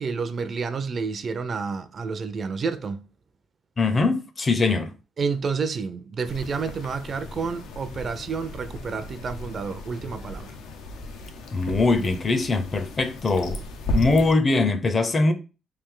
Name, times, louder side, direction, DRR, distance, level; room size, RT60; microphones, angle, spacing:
voice 1, 0.0-3.0 5.2-10.6, right 5 dB, 45° right, 0.4 m, -29 dB
voice 2, 3.8-4.9 11.5-13.6 13.9-15.3, left 3 dB, 35° left, 0.6 m, -22 dB
sound 1, 6.2-14.3, left 1 dB, 85° left, 0.6 m, -35 dB
3.3 x 2.6 x 3.7 m
cardioid pair, 90°, 0 cm